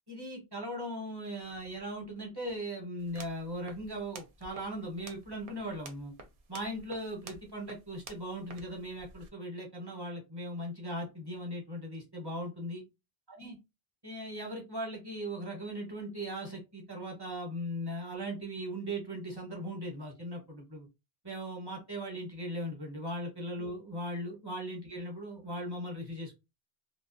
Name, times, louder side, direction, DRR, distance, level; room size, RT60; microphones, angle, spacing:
voice 1, 0.1-6.1 6.5-12.8 13.3-13.6 14.0-20.9 21.2-26.4, equal, 25° right, 0 dB, 0.7 m, -38 dB
sound 1, 3.0-9.3, right 4 dB, 60° right, 0.7 m, -52 dB
2.3 x 2.2 x 2.5 m, 0.25 s
omnidirectional pair, 1.1 m